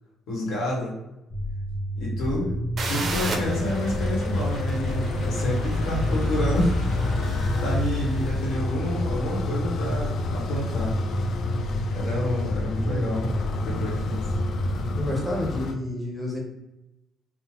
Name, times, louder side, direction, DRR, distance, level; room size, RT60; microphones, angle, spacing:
voice 1, 0.3-0.9 2.0-2.5 2.9-6.8 7.6-11.0 11.9-13.3 13.6-14.2, equal, 75° left, -3 dB, 1.2 m, -29 dB
sound 1, 1.3-15.0, equal, 30° left, 1.0 m, -30 dB
sound 2, 2.8-8.4, right 3 dB, 35° right, 0.4 m, -36 dB
sound 3, 3.2-15.8, left 3 dB, 50° left, 0.3 m, -29 dB
voice 2, 15.0-16.4, left 2 dB, ahead, -3 dB, 0.6 m, -30 dB
3.7 x 2.1 x 2.9 m, 0.94 s
cardioid pair, 175°, 0 cm